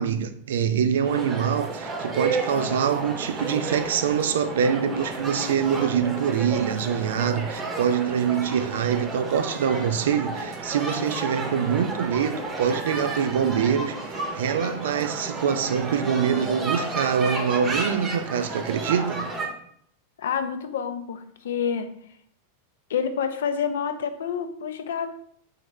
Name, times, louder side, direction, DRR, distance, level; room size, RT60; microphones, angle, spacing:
voice 1, 0.0-19.3, right 7 dB, 60° right, 0.3 m, -25 dB
sound 1, 1.0-19.5, right 3 dB, 20° right, 0.7 m, -32 dB
voice 2, 20.2-21.9 22.9-25.1, left 7 dB, 60° left, 0.4 m, -28 dB
3.9 x 3.1 x 3.2 m
figure-of-eight pair, 90°, 0 cm